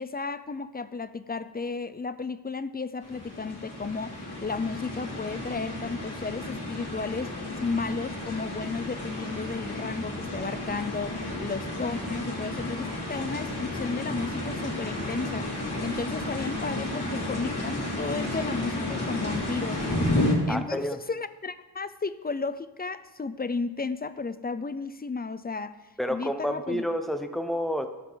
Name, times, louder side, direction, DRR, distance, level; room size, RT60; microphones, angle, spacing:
voice 1, 0.0-7.3 7.6-15.5 15.8-19.8 20.5-25.7 26.1-26.9, left 4 dB, 25° left, 13 dB, 0.5 m, -33 dB
sound 1, 3.0-20.3, left 1 dB, 65° left, 2.7 m, -32 dB
voice 2, 20.5-21.0 26.0-27.9, equal, ahead, 7 dB, 0.8 m, -29 dB
15.0 x 7.0 x 4.0 m, 1.2 s
wide cardioid pair, 75°, 42 cm